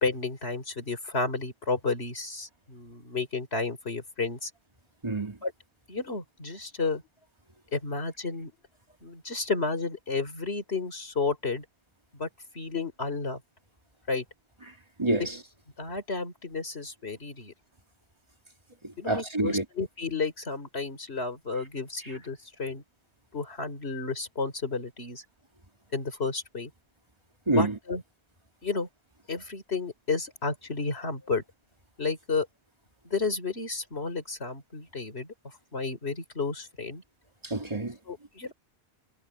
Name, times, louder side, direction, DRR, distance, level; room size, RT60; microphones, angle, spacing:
voice 1, 0.0-4.5 5.4-5.5 5.9-7.0 7.7-8.5 9.0-11.6 12.1-12.3 12.5-13.4 14.1-14.2 15.8-17.5 19.0-22.8 23.3-25.2 25.9-26.7 27.5-28.0 28.6-28.9 29.3-31.4 32.0-32.5 33.0-35.3 35.7-37.0 38.1-38.5, left 4 dB, 70° left, 3.9 m, -32 dB
voice 2, 5.0-5.4 15.0-15.3 18.8-19.6 27.5-27.8 37.4-38.0, right 2 dB, 25° right, 2.6 m, -27 dB
omnidirectional pair, 1.1 m